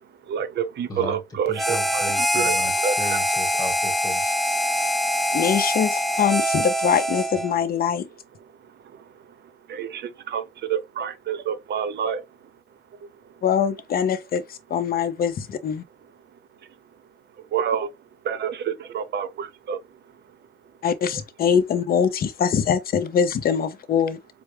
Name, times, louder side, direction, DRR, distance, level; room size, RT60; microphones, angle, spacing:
voice 1, 0.0-3.2 4.6-5.4 8.4-12.5 12.9-13.0 13.2-13.4 16.3-16.7 17.4-17.9 18.2-20.4, right 8 dB, 60° right, 0.7 m, -30 dB
voice 2, 1.5-2.7 3.0-4.3, right 1 dB, 20° left, 1.3 m, -35 dB
Harmonica, 1.6-7.6, equal, ahead, 0.3 m, -24 dB
voice 3, 5.3-8.1 13.4-15.8 20.8-24.2, left 7 dB, 50° left, 0.5 m, -23 dB
4.5 x 2.0 x 3.2 m
cardioid pair, 90°, 20 cm